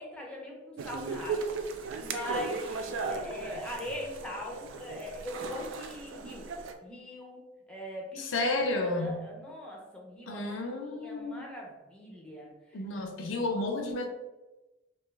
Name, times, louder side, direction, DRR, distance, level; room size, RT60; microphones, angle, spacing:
voice 1, 0.0-1.6 2.0-6.5 6.8-7.4 7.7-8.5 8.8-10.4 10.9-12.5, equal, 5° left, -2 dB, 0.5 m, -41 dB
sound 1, 0.8-6.7, right 4 dB, 80° right, 0.3 m, -37 dB
voice 2, 8.2-9.3 10.3-11.5 12.7-14.1, left 2 dB, 80° left, 3 dB, 0.5 m, -31 dB
2.6 x 2.3 x 3.1 m, 1.1 s
head